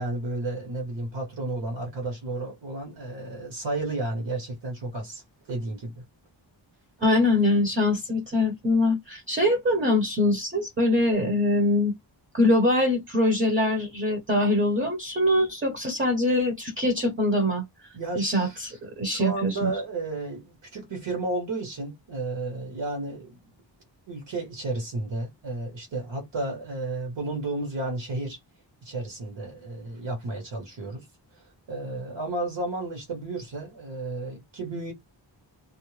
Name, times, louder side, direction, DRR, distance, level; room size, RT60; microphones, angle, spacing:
voice 1, 0.0-5.2 5.5-6.0 17.9-18.8 19.1-23.4 24.1-28.4 28.8-31.0 31.7-34.9, right 2 dB, 70° right, 1.1 m, -32 dB
voice 2, 7.0-11.9 12.3-17.6 18.2-19.7, left 1 dB, 25° right, 0.7 m, -23 dB
2.4 x 2.1 x 3.1 m
wide cardioid pair, 160°, 45 cm